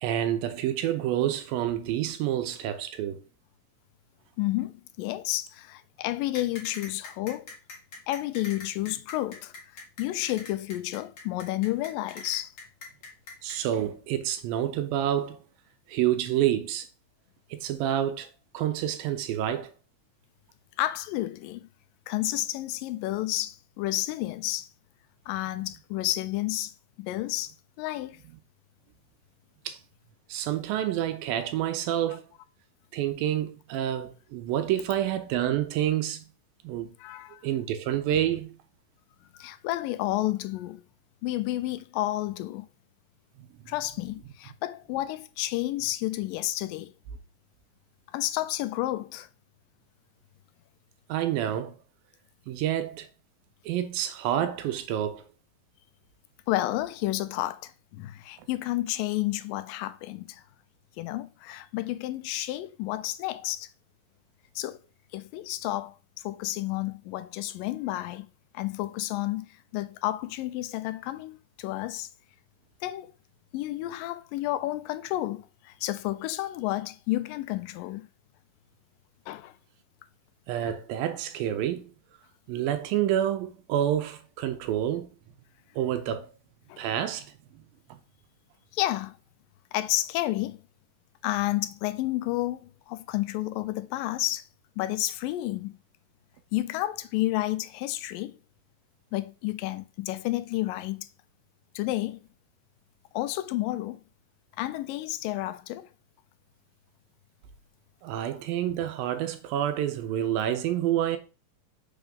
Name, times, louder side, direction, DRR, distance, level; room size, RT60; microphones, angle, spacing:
voice 1, 0.0-3.2 13.4-15.4 15.9-16.9 17.5-18.3 18.5-19.7 29.7-29.8 30.3-32.2 32.9-36.2 36.6-36.9 37.4-38.5 51.1-51.8 52.5-53.1 53.7-55.2 80.5-81.9 82.5-85.1 85.8-86.3 86.8-87.3 87.9-88.0 108.0-111.2, right 11 dB, 85° right, 2.5 m, -28 dB
voice 2, 4.4-7.5 8.1-12.5 20.8-21.7 22.1-24.7 25.3-26.7 27.0-28.2 37.0-37.5 39.3-40.8 41.2-42.7 43.7-46.9 48.1-49.3 56.5-60.4 61.0-63.7 64.6-64.8 65.1-66.0 66.2-68.3 68.5-72.1 72.8-73.1 73.5-78.1 79.3-79.5 86.7-86.9 88.7-89.2 89.7-90.6 91.2-94.5 94.8-95.7 96.5-98.4 99.1-101.1 101.8-102.2 103.1-104.0 104.6-105.9, left 16 dB, 80° left, 2.1 m, -31 dB
sound 1, 6.3-13.6, left 4 dB, 50° left, 2.0 m, -43 dB
6.0 x 3.5 x 5.3 m
omnidirectional pair, 4.1 m